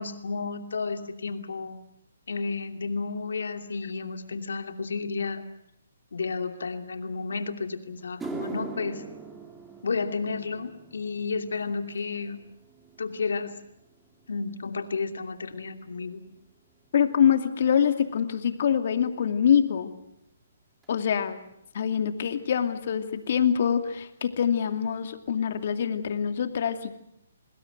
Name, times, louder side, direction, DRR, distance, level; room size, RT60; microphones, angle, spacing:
voice 1, 0.0-1.8 2.3-5.4 6.1-9.0 9.8-12.4 13.0-13.6 14.3-16.2, left 4 dB, 75° left, 7 dB, 2.7 m, -32 dB
sound 1, 8.0-16.5 16.8-17.2 18.0-18.1 20.8-20.9 22.6-22.7 22.9-23.1 23.4-23.9 24.3-24.4 24.9-25.0, right 3 dB, 10° right, 3.1 m, -44 dB
voice 2, 16.9-19.9 20.9-21.4 21.7-26.9, left 8 dB, 55° left, 7 dB, 2.5 m, -25 dB
27.5 x 20.0 x 8.0 m, 0.77 s
hypercardioid pair, 140°, 0 cm